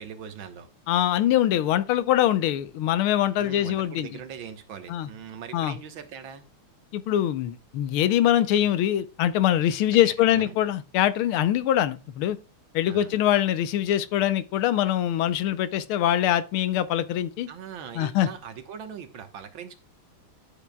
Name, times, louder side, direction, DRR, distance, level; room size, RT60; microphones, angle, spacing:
voice 1, 0.0-0.7 3.4-6.5 8.6-8.7 10.0-10.6 12.9-13.2 17.5-19.7, right 7 dB, 70° right, 1.8 m, -41 dB
voice 2, 0.9-4.1 4.9-5.1 5.5-5.8 6.9-12.4 12.7-17.5 18.0-18.3, left 12 dB, 85° left, 1.6 m, -23 dB
12.0 x 6.9 x 2.2 m
omnidirectional pair, 2.3 m